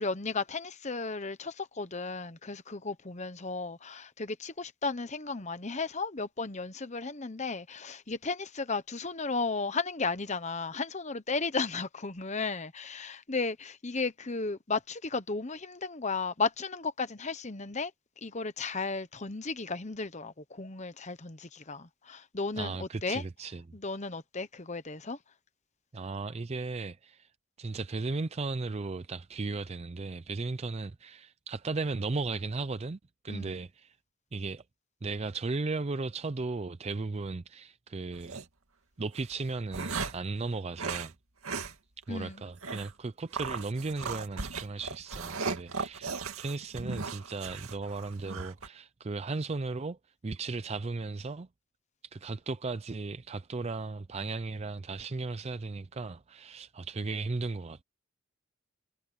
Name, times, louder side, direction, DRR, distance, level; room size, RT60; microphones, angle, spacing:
voice 1, 0.0-17.9 18.2-23.2 23.7-25.2 33.3-33.5 42.1-42.4, left 4 dB, 35° left, 1.1 m, -34 dB
voice 2, 22.6-23.6 25.9-27.3 27.6-33.0 33.2-34.0 34.3-34.6 35.0-38.4 39.0-41.1 42.1-50.0 50.2-51.5 52.1-57.8, right 3 dB, 30° right, 0.4 m, -36 dB
sound 1, 38.1-38.5 39.2-40.3 40.8-41.1 41.4-41.7 42.0-42.1 42.6-42.9 43.3-48.7, right 4 dB, 85° right, 2.3 m, -37 dB
head